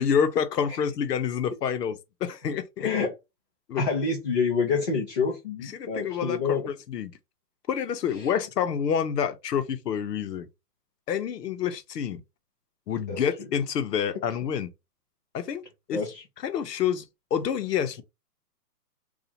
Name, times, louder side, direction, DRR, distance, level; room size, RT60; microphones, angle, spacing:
voice 1, 0.0-2.9 3.7-3.8 5.6-7.1 7.7-10.5 11.1-12.2 12.9-14.7 15.3-16.0 16.4-17.1 17.3-18.0, left 8 dB, 85° left, 0.8 m, -28 dB
voice 2, 2.8-3.1 3.8-6.7 8.2-8.3 13.1-13.2 15.9-16.2, left 5 dB, 30° left, 0.5 m, -27 dB
2.8 x 2.4 x 4.1 m
hypercardioid pair, 160°, 47 cm